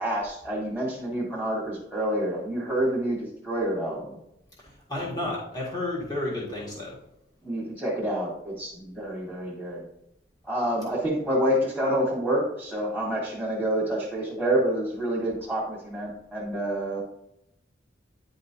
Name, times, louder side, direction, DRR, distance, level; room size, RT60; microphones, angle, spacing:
voice 1, 0.0-4.2 7.4-9.8 10.4-17.0, right 1 dB, 5° left, -5 dB, 1.7 m, -28 dB
voice 2, 4.9-7.0, left 1 dB, 25° left, -6 dB, 1.8 m, -31 dB
9.7 x 5.2 x 2.8 m, 0.80 s
head